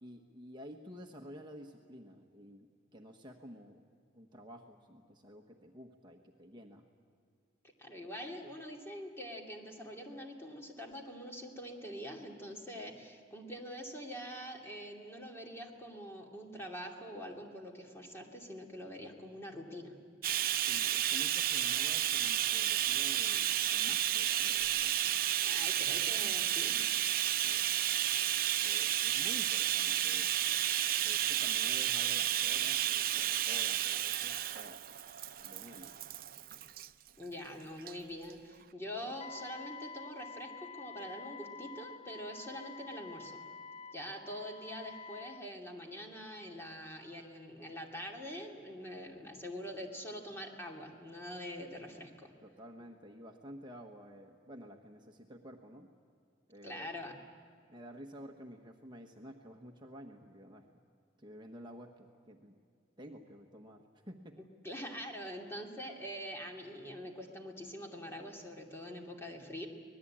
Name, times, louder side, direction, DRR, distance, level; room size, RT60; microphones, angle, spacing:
voice 1, 0.0-3.8 4.1-6.9 20.5-25.2 27.4-27.7 28.6-30.5 31.0-34.8 35.4-35.9 39.0-39.1 52.4-55.9 56.5-56.9 57.7-60.6 61.2-62.5 63.0-64.4, equal, 25° right, 2 dB, 1.2 m, -51 dB
voice 2, 7.8-19.9 25.4-26.8 32.6-32.7 37.2-43.4 43.9-52.3 56.6-57.1 64.6-69.7, equal, 15° left, 0 dB, 2.7 m, -44 dB
Bathtub (filling or washing), 20.2-36.9 37.8-37.9 38.3-38.4, right 12 dB, 50° right, 0.6 m, -32 dB
Wind instrument woodwind instrument, 39.2-45.4, left 4 dB, 30° left, 0.6 m, -48 dB
25.5 x 19.5 x 8.8 m, 2.3 s
head